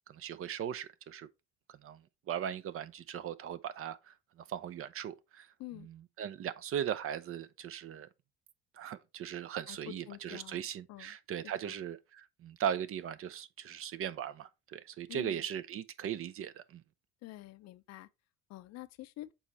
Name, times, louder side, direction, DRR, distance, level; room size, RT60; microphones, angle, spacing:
voice 1, 0.1-1.3 1.7-8.1 8.7-16.8, right 9 dB, 40° right, 0.6 m, -39 dB
voice 2, 9.7-11.1 11.6-11.8 15.1-15.4 17.2-18.1 18.5-19.3, left 16 dB, 50° left, 0.6 m, -48 dB
6.9 x 4.3 x 4.1 m
hypercardioid pair, 60°, 34 cm